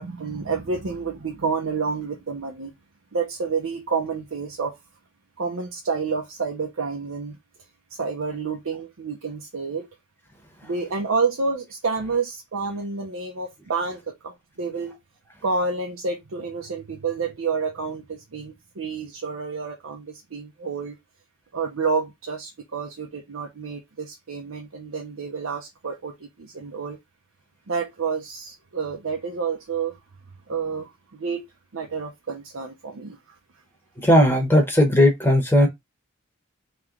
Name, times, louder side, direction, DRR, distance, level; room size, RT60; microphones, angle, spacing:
voice 1, 0.0-2.7 3.1-4.7 5.4-7.4 7.9-9.9 10.6-15.0 15.4-21.0 21.5-27.0 27.7-30.0 30.5-31.4 31.7-33.2, right 4 dB, 80° right, 0.7 m, -29 dB
voice 2, 34.0-35.7, left 1 dB, 10° left, 0.9 m, -17 dB
3.0 x 3.0 x 3.6 m
head